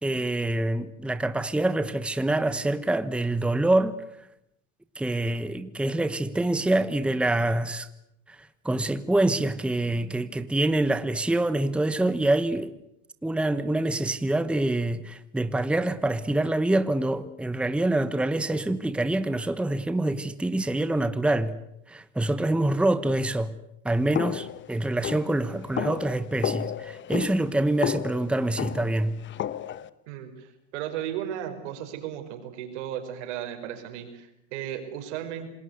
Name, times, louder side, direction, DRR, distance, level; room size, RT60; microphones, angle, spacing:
voice 1, 0.0-3.9 5.0-7.9 8.3-8.4 8.6-12.8 13.2-21.5 21.9-23.5 23.8-29.2, right 2 dB, 5° right, 1.1 m, -26 dB
sound 1, 24.1-29.9, left 10 dB, 35° left, 1.0 m, -33 dB
voice 2, 30.1-35.5, right 10 dB, 80° right, 5.2 m, -35 dB
27.5 x 20.0 x 8.1 m
supercardioid pair, 115°, 34 cm